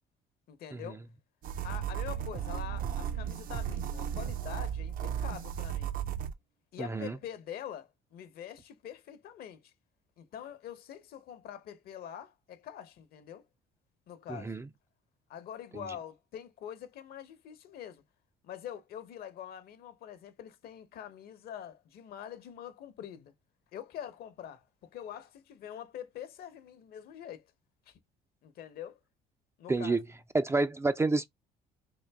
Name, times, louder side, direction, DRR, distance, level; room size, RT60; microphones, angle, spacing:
voice 1, 0.5-1.0 1.6-5.9 6.7-9.7 10.2-13.5 14.1-14.6 15.3-18.0 18.4-23.3 23.7-27.5 27.9-28.0 28.4-29.0 29.6-30.0, left 9 dB, 65° left, 0.8 m, -45 dB
sound 1, 1.4-6.3, right 9 dB, 55° right, 0.6 m, -35 dB
voice 2, 6.8-7.1 14.3-14.6 29.7-30.0 30.3-31.3, right 3 dB, 15° right, 0.3 m, -28 dB
3.8 x 2.6 x 3.4 m
cardioid pair, 110°, 17 cm